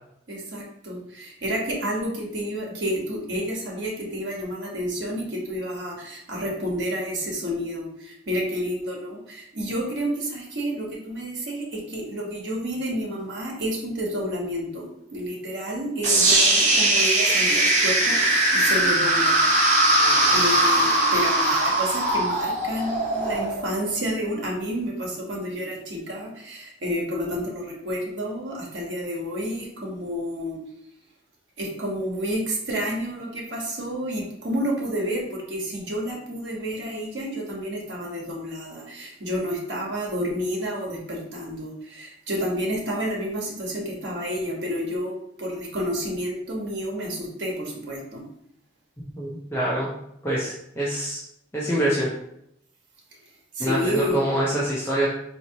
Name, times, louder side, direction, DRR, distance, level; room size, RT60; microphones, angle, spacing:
voice 1, 0.3-19.5 20.3-30.6 31.6-48.2 53.5-54.2, equal, 85° right, -2 dB, 1.1 m, -30 dB
sound 1, 16.0-24.1, right 1 dB, 40° right, 0.9 m, -20 dB
voice 2, 49.2-49.9 50.2-51.2 51.5-52.1 53.6-55.1, right 1 dB, 15° left, -7 dB, 0.7 m, -25 dB
4.1 x 3.0 x 2.8 m, 0.76 s
head